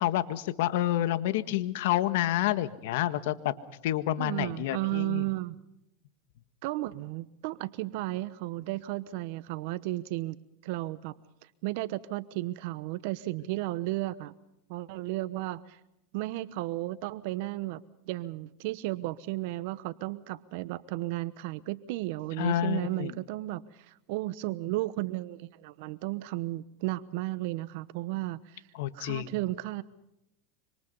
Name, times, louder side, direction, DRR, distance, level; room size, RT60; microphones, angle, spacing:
voice 1, 0.0-3.5 3.8-5.2 22.4-23.1 28.7-29.3, left 13 dB, 70° left, 12 dB, 1.7 m, -29 dB
voice 2, 4.2-5.6 6.6-10.4 10.6-11.1 11.6-14.3 14.7-15.8 16.1-28.6 28.9-29.8, right 18 dB, 65° right, 15 dB, 1.0 m, -34 dB
26.5 x 26.0 x 5.5 m, 0.82 s
supercardioid pair, 130°, 0 cm